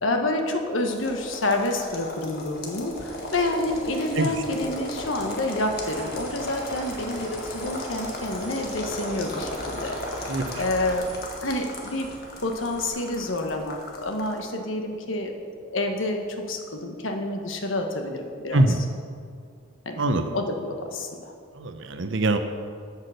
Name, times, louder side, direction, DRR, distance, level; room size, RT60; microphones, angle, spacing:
voice 1, 0.0-10.0 10.6-11.1 11.4-12.1 12.4-15.3 15.6-18.6 19.8-20.0 20.3-21.3, left 1 dB, 80° left, 4 dB, 1.3 m, -28 dB
sound 1, 0.9-14.4, left 1 dB, 50° left, 1.6 m, -37 dB
sound 2, 2.9-12.9, right 1 dB, 10° right, 1.9 m, -42 dB
voice 2, 10.3-10.6 18.5-18.8 19.9-20.3 21.5-22.4, right 2 dB, 65° right, 7 dB, 0.8 m, -23 dB
8.5 x 8.3 x 6.5 m, 2.2 s
head